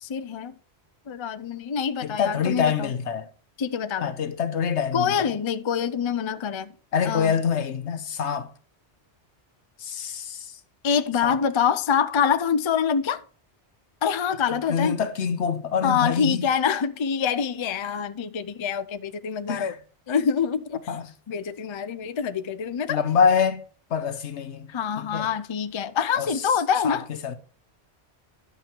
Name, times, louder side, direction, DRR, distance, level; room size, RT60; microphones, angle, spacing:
voice 1, 0.0-0.5 1.1-2.9 3.6-4.2 4.9-6.7 7.1-7.3 10.8-13.2 14.0-15.0 15.8-19.7 20.1-20.8 21.3-23.0 24.7-27.1, left 7 dB, 35° left, 0.5 m, -25 dB
voice 2, 2.0-3.3 4.0-5.4 6.9-8.5 9.8-10.6 11.2-11.4 14.5-16.5 19.5-19.8 20.9-21.1 22.9-23.6 23.9-25.3 26.2-26.4 26.8-27.4, left 6 dB, 80° left, 1.2 m, -26 dB
11.0 x 7.0 x 4.5 m
omnidirectional pair, 1.1 m